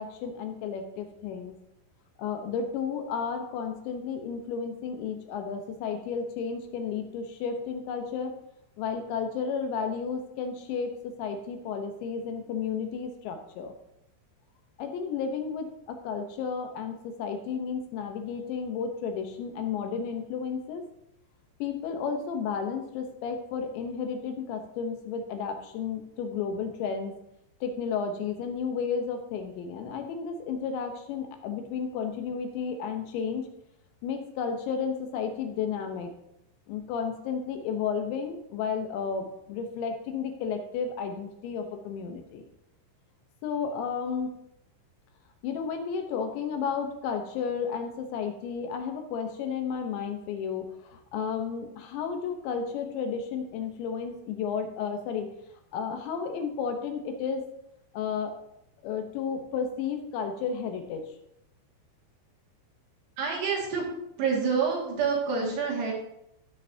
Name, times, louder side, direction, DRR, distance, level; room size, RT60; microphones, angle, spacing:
voice 1, 0.0-1.5 2.2-8.4 8.8-10.9 11.2-13.7 14.8-20.9 21.6-27.1 27.6-33.5 34.0-36.1 36.7-42.4 43.4-44.3 45.4-55.3 55.7-57.4 57.9-58.3 58.8-61.0, left 6 dB, 80° left, 5 dB, 3.2 m, -32 dB
voice 2, 63.2-63.9 64.2-65.9, right 5 dB, 65° right, -3 dB, 4.0 m, -27 dB
16.0 x 6.6 x 2.8 m, 0.80 s
omnidirectional pair, 5.3 m